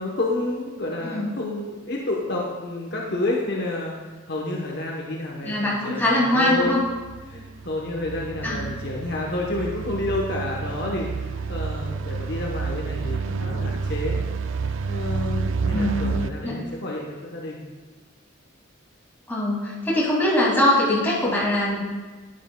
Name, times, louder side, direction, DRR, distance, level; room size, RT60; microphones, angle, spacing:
voice 1, 0.0-4.0 4.3-6.8 7.3-14.2 14.9-17.6, left 2 dB, 55° left, -2 dB, 0.9 m, -29 dB
voice 2, 5.4-6.8 8.4-8.6 15.7-16.1 16.4-16.6 19.3-21.8, left 1 dB, 10° left, -7 dB, 2.3 m, -22 dB
sound 1, 6.6-16.3, right 5 dB, 70° right, 0.4 m, -29 dB
10.5 x 9.4 x 2.2 m, 1.3 s
head